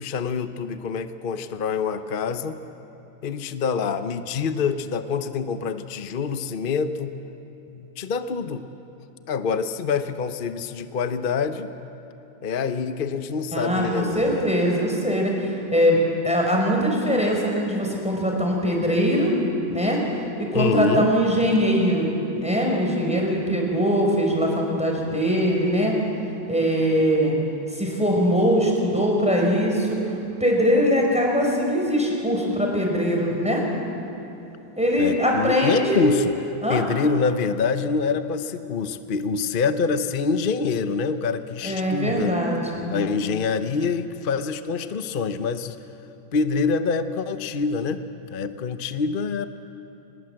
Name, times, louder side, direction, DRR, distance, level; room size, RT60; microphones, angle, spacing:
voice 1, 0.0-2.6 3.2-7.1 7.7-8.6 9.3-11.7 12.4-14.4 20.5-21.1 35.0-36.3 36.7-42.4 42.9-45.8 46.3-49.5, left 5 dB, 50° left, 10 dB, 0.6 m, -26 dB
voice 2, 13.5-16.0 16.2-19.3 19.7-20.0 20.4-26.0 26.5-27.3 27.7-30.0 30.4-33.6 34.8-36.0 36.6-36.8 41.6-42.9, equal, 5° right, -1 dB, 4.6 m, -22 dB
24.5 x 21.0 x 7.9 m, 3.0 s
omnidirectional pair, 2.0 m